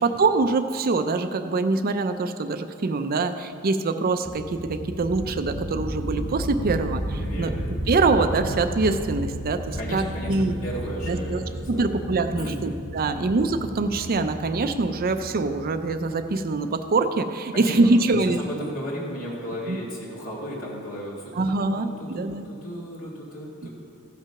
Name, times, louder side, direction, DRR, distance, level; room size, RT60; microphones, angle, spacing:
voice 1, 0.0-7.5 7.9-10.0 10.3-10.5 11.1-11.4 11.7-18.7 19.7-19.8 21.4-22.5 23.6-23.7, right 3 dB, 40° right, 8 dB, 0.5 m, -24 dB
sound 1, 4.2-16.6, right 1 dB, 25° left, 1.9 m, -33 dB
voice 2, 7.2-7.7 9.8-10.3 10.6-11.4 11.7-12.0 12.4-13.3 17.5-21.5 21.8-23.7, equal, 70° left, -6 dB, 2.3 m, -35 dB
14.5 x 5.9 x 5.7 m, 2.5 s
head